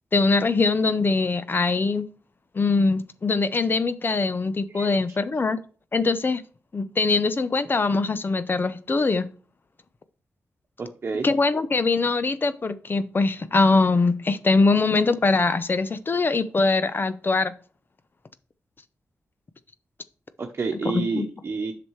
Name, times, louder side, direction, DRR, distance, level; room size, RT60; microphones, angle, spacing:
voice 1, 0.1-2.1 2.5-5.6 5.9-6.4 6.7-9.3 11.2-17.5 20.8-21.3, left 3 dB, 45° left, 12 dB, 0.7 m, -22 dB
voice 2, 10.8-11.3 20.4-21.7, right 4 dB, 50° right, 2 dB, 1.0 m, -29 dB
7.7 x 6.0 x 3.2 m, 0.40 s
cardioid pair, 55°, 5 cm